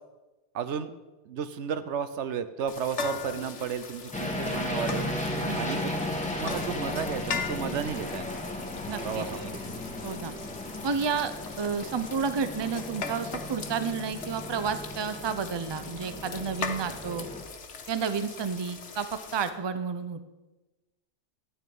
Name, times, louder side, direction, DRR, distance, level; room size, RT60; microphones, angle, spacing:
voice 1, 0.5-0.9 1.3-5.1 5.5-5.8 6.4-8.4 9.0-9.6, right 7 dB, 80° right, 12 dB, 1.0 m, -33 dB
sound 1, 2.7-19.5, left 5 dB, 75° left, 1.4 m, -40 dB
sound 2, 4.1-17.4, left 1 dB, 5° left, 1.7 m, -35 dB
voice 2, 5.5-5.8 8.9-9.3 10.0-10.3 10.8-17.3 17.9-20.2, right 6 dB, 30° right, 11 dB, 0.6 m, -31 dB
12.5 x 8.5 x 5.4 m, 1.1 s
omnidirectional pair, 1.2 m